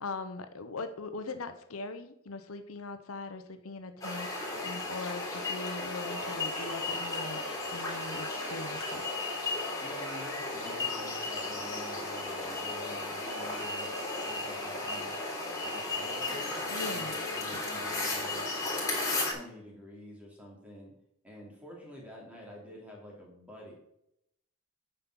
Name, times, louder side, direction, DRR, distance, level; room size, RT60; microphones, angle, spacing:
voice 1, 0.0-7.4 7.7-9.1 16.7-17.2, left 3 dB, 85° left, 9 dB, 0.8 m, -40 dB
sound 1, 4.0-19.3, left 2 dB, 15° left, 3.5 m, -35 dB
Tap, 5.1-5.2 5.7-5.8 6.6-6.7 7.1-7.3 8.2-8.4 8.8-9.0 10.0-10.1 10.6-10.7, left 3 dB, 30° left, 2.2 m, -49 dB
voice 2, 9.8-15.2 15.6-18.7 19.2-20.9 21.2-23.7, left 1 dB, 5° right, -3 dB, 2.8 m, -48 dB
9.1 x 5.5 x 6.0 m, 0.78 s
head